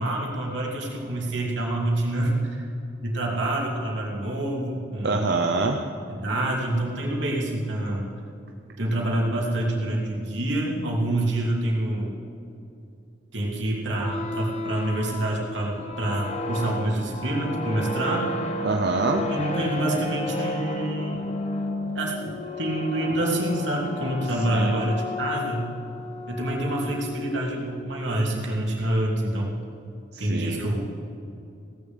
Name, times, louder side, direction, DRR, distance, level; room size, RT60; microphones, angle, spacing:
voice 1, 0.0-2.6 3.0-5.2 6.1-8.1 8.8-12.2 13.3-18.5 19.1-21.3 21.9-25.7 26.3-29.6 30.2-30.8, right 1 dB, 80° right, -2 dB, 3.0 m, -27 dB
voice 2, 5.0-5.8 18.6-19.3 24.5-24.9 30.1-30.6, right 3 dB, 60° right, 2 dB, 0.8 m, -25 dB
sound 1, 13.9-27.7, left 2 dB, 35° left, 1.1 m, -33 dB
17.5 x 7.0 x 8.2 m, 2.6 s
head